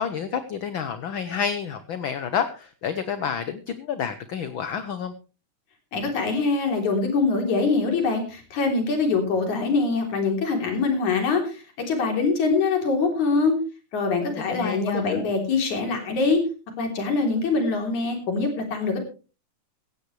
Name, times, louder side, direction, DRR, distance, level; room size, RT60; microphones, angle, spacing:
voice 1, 0.0-5.1 14.2-15.2, left 7 dB, 65° left, 11 dB, 1.2 m, -29 dB
voice 2, 5.9-13.6 13.9-16.4 16.8-19.0, left 4 dB, 80° left, 4 dB, 4.8 m, -24 dB
17.0 x 15.0 x 3.2 m, 0.34 s
omnidirectional pair, 3.3 m